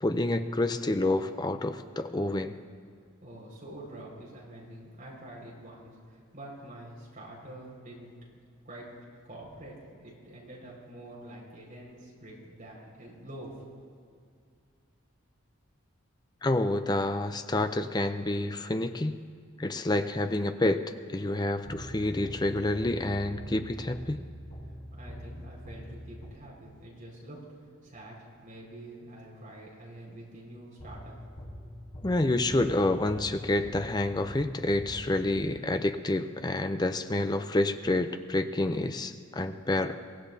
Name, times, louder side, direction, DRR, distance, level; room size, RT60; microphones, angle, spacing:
voice 1, 0.0-2.6 16.4-19.2 19.6-20.8 21.1-24.2 32.0-39.9, left 2 dB, 20° left, 9 dB, 0.5 m, -28 dB
voice 2, 3.2-8.1 8.6-8.9 9.2-13.6 24.9-27.4 27.8-28.2 28.4-31.2 31.6-31.7, right 1 dB, 40° right, -4 dB, 5.0 m, -46 dB
sound 1, 21.7-26.8 30.8-36.0, equal, 50° left, 3.5 m, -44 dB
23.5 x 17.0 x 2.7 m, 2.2 s
head